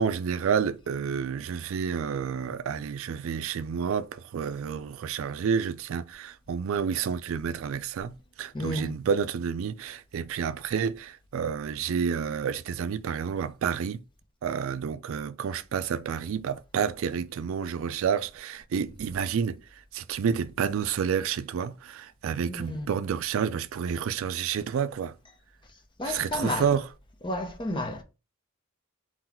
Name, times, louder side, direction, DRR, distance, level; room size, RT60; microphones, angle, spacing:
voice 1, 0.0-14.0 14.4-19.6 19.9-25.1 26.0-26.9, right 7 dB, 65° right, 0.3 m, -29 dB
voice 2, 8.5-8.9 22.5-22.9 26.0-26.7 27.2-28.0, left 1 dB, 20° left, 0.7 m, -31 dB
4.0 x 2.3 x 4.3 m
head